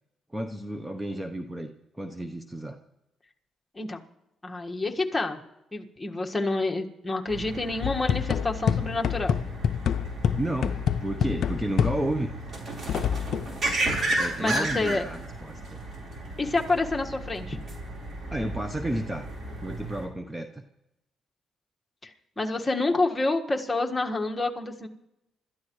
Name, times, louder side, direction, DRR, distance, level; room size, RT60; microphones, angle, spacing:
voice 1, 0.3-2.8 10.4-12.3 14.2-15.8 18.3-19.3 19.6-20.6, right 1 dB, 10° right, 7 dB, 0.9 m, -32 dB
voice 2, 4.4-5.4 5.7-9.4 14.4-15.0 16.4-17.6 22.0-24.9, left 2 dB, 15° left, 2 dB, 1.7 m, -28 dB
sound 1, 7.3-20.1, right 2 dB, 50° right, 4.2 m, -34 dB
sound 2, 7.8-12.3 12.9-13.6, left 8 dB, 65° left, 0.5 m, -27 dB
26.5 x 13.5 x 3.2 m, 0.88 s
cardioid pair, 90°, 0 cm